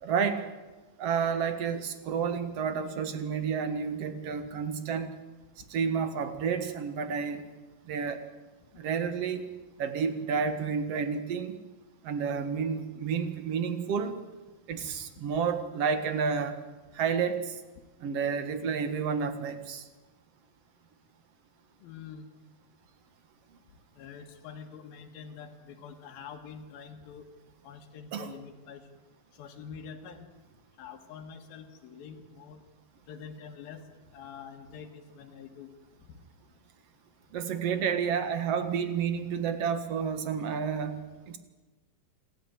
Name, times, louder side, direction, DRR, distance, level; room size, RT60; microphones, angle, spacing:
voice 1, 0.0-0.5 1.0-5.1 5.7-7.5 7.9-8.2 8.8-9.4 9.8-11.6 12.0-14.1 14.7-16.6 16.9-17.5 18.0-19.8 28.1-28.3 37.3-41.4, right 6 dB, 50° right, 9 dB, 2.1 m, -30 dB
voice 2, 21.8-22.3 23.9-27.3 27.6-28.9 29.3-30.3 30.8-32.6 33.1-33.8 34.1-35.7 36.1-36.2, left 6 dB, 80° left, 1 dB, 3.3 m, -46 dB
27.0 x 14.0 x 9.2 m, 1.2 s
omnidirectional pair, 4.2 m